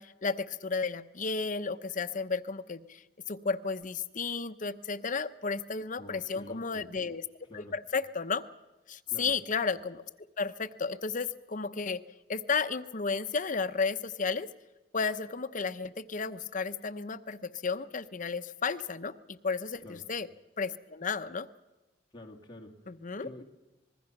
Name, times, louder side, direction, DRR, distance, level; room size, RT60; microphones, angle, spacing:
voice 1, 0.0-3.0 3.3-7.2 7.5-8.4 8.9-10.0 10.4-12.0 12.3-14.5 14.9-20.3 20.6-21.5 22.9-23.3, left 4 dB, 45° left, 11 dB, 0.8 m, -33 dB
voice 2, 6.0-6.9 7.5-7.8 9.1-9.4 19.8-20.0 22.1-22.7 23.2-23.4, left 1 dB, 25° left, 1 dB, 2.1 m, -47 dB
25.5 x 21.0 x 5.9 m, 1.1 s
head